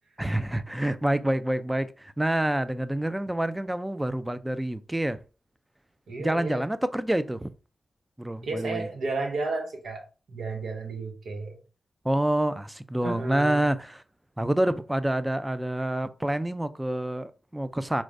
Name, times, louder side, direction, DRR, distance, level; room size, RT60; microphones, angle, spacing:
voice 1, 0.2-5.2 6.2-7.5 8.2-8.9 12.0-14.0 14.4-18.0, right 1 dB, 15° right, 0.4 m, -27 dB
voice 2, 6.1-6.6 8.4-10.0 10.3-11.6 13.0-13.7, right 3 dB, 85° right, 0.9 m, -32 dB
4.5 x 2.1 x 2.6 m
cardioid pair, 50°, 0 cm